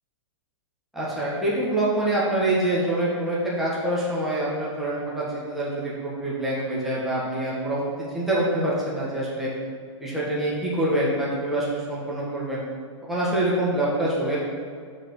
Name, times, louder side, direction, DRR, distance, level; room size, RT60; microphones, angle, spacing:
voice 1, 0.9-7.8 8.1-9.5 10.0-12.6 13.0-14.4, right 1 dB, ahead, -8 dB, 1.4 m, -25 dB
6.0 x 5.0 x 6.0 m, 2.1 s
hypercardioid pair, 165°, 16 cm